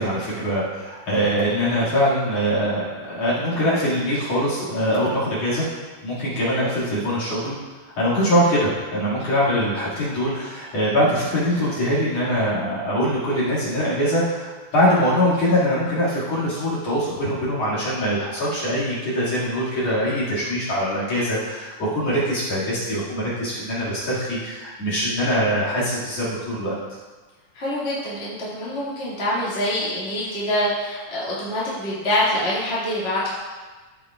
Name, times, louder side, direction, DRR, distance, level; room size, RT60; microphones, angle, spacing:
voice 1, 0.0-5.6 6.0-7.5 8.0-26.7, equal, 50° left, -9 dB, 3.1 m, -23 dB
voice 2, 27.5-33.3, left 1 dB, 25° left, -10 dB, 1.8 m, -25 dB
14.5 x 5.4 x 2.4 m, 1.3 s
omnidirectional pair, 3.9 m